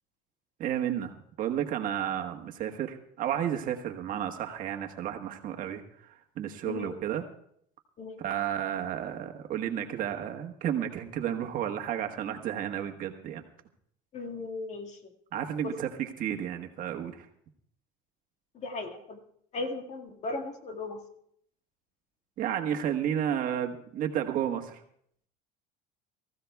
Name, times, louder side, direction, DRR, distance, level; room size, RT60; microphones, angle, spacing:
voice 1, 0.6-5.8 6.4-7.2 8.2-13.4 15.3-17.3 22.4-24.8, right 10 dB, 50° right, 4 dB, 1.4 m, -32 dB
voice 2, 14.1-15.0 15.6-15.7 18.6-19.2 19.5-21.0, left 3 dB, 40° left, 4 dB, 1.8 m, -36 dB
24.0 x 15.0 x 2.3 m, 0.68 s
supercardioid pair, 120°, 18 cm